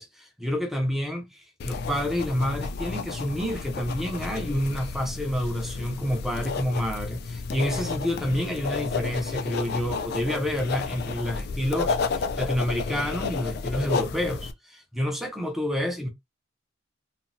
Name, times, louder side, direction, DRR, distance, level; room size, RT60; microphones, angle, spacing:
voice 1, 0.0-16.1, equal, ahead, 0.6 m, -29 dB
sound 1, 1.6-14.5, left 4 dB, 50° left, 0.3 m, -31 dB
2.9 x 2.1 x 2.6 m
head